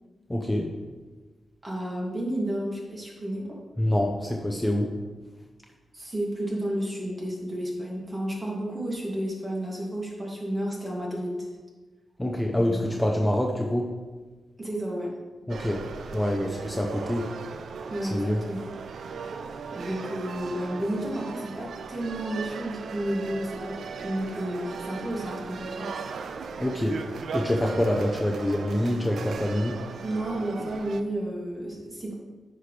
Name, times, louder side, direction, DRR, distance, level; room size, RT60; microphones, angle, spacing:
voice 1, 0.3-0.7 3.8-4.9 12.2-13.9 15.5-15.8 16.1-17.3 18.0-18.4 26.6-27.0 27.3-29.8, left 1 dB, 10° left, 0 dB, 0.8 m, -26 dB
voice 2, 1.6-3.6 5.9-11.5 12.6-13.1 14.6-15.1 17.9-18.7 19.7-25.9 30.0-32.1, right 1 dB, 30° right, -3 dB, 2.6 m, -32 dB
sound 1, 15.5-31.0, right 5 dB, 80° right, 0.5 m, -37 dB
9.9 x 6.1 x 3.4 m, 1.3 s
cardioid pair, 75°, 0 cm